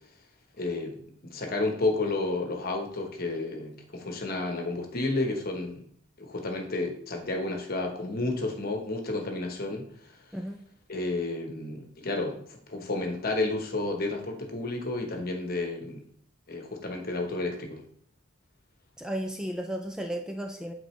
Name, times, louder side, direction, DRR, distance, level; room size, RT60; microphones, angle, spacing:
voice 1, 0.6-0.9 1.2-5.8 6.2-9.9 10.9-16.0 16.5-17.8, left 2 dB, 50° left, 3 dB, 1.1 m, -31 dB
voice 2, 10.3-10.6 19.0-20.7, right 1 dB, 5° right, 3 dB, 0.4 m, -34 dB
7.9 x 3.9 x 3.2 m, 0.62 s
head